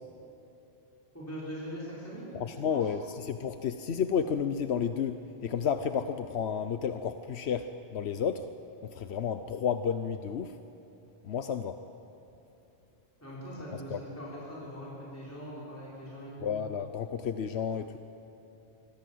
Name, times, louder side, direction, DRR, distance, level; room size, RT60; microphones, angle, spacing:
voice 1, 1.1-2.3 2.7-2.9 13.2-16.5, equal, 15° left, -8 dB, 5.8 m, -41 dB
voice 2, 2.3-8.5 8.8-10.6 11.2-11.8 13.9-14.0 16.4-18.0, left 7 dB, 90° left, 9 dB, 1.1 m, -31 dB
26.0 x 24.0 x 7.8 m, 2.9 s
omnidirectional pair, 1.1 m